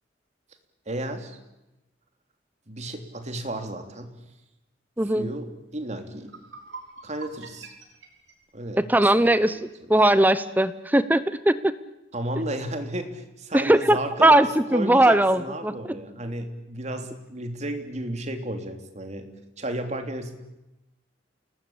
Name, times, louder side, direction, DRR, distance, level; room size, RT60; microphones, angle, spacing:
voice 1, 0.8-1.4 2.7-4.1 5.1-6.4 7.0-7.7 8.5-8.8 9.2-9.7 12.1-20.4, right 1 dB, 40° right, 6 dB, 3.3 m, -33 dB
voice 2, 5.0-5.3 8.8-9.6 9.9-11.7 13.5-15.7, right 1 dB, 10° right, 14 dB, 0.9 m, -19 dB
sound 1, 6.2-9.3, right 3 dB, 70° right, 6.0 m, -45 dB
29.0 x 20.0 x 8.7 m, 0.95 s
head